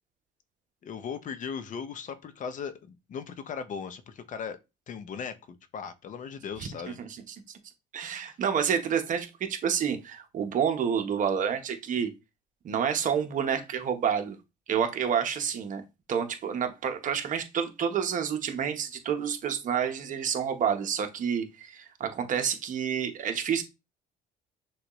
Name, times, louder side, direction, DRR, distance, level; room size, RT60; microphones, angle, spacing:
voice 1, 0.8-4.6 4.9-5.4 5.7-7.0, left 6 dB, 50° left, 0.7 m, -37 dB
voice 2, 7.0-7.4 7.9-12.1 12.6-14.4 14.7-23.6, right 7 dB, 50° right, 0.9 m, -29 dB
6.2 x 2.3 x 3.0 m
cardioid pair, 110°, 17 cm